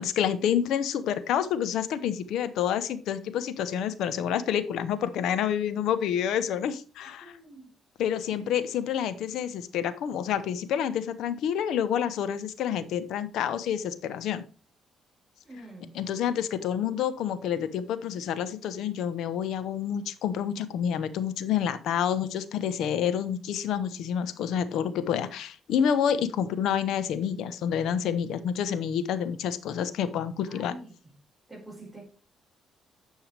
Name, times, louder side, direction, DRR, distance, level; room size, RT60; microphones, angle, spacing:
voice 1, 0.0-7.3 8.0-14.4 15.9-30.7, left 9 dB, 80° left, 0.8 m, -28 dB
voice 2, 7.2-7.7 8.3-8.5 15.4-15.9 30.5-30.9 31.5-32.0, right 1 dB, 10° right, 4.5 m, -46 dB
10.5 x 5.6 x 3.3 m
cardioid pair, 90°, 0 cm